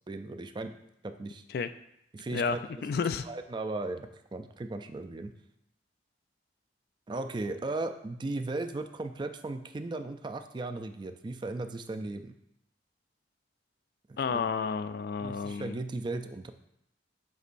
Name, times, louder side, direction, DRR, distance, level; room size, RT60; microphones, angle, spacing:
voice 1, 0.1-0.8 1.0-1.4 2.1-2.6 3.2-5.3 7.1-12.3 14.1-14.5 15.2-16.5, right 2 dB, 25° right, 8 dB, 0.3 m, -36 dB
voice 2, 2.8-3.3 14.2-15.8, left 5 dB, 55° left, 12 dB, 0.3 m, -31 dB
8.1 x 5.3 x 2.5 m, 0.80 s
head